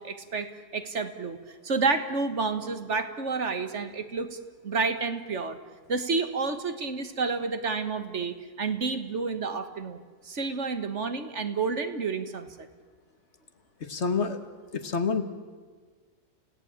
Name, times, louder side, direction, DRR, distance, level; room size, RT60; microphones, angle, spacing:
voice 1, 0.0-1.4 1.6-4.4 4.6-5.6 5.9-12.7, right 4 dB, 50° right, 9 dB, 1.7 m, -30 dB
voice 2, 13.8-14.4 14.7-15.2, left 5 dB, 45° left, 9 dB, 1.7 m, -27 dB
29.5 x 17.5 x 8.8 m, 1.5 s
omnidirectional pair, 1.7 m